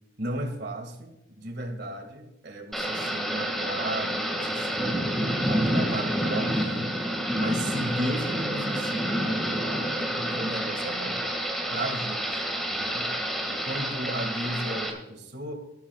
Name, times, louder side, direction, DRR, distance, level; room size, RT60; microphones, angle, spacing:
voice 1, 0.2-5.1 5.4-7.0 7.3-11.2 11.7-12.4 12.7-13.1 13.4-15.5, right 1 dB, 60° right, 5 dB, 2.2 m, -35 dB
Thunder / Rain, 2.7-14.9, equal, ahead, 2.1 m, -28 dB
19.5 x 13.0 x 2.4 m, 0.96 s
head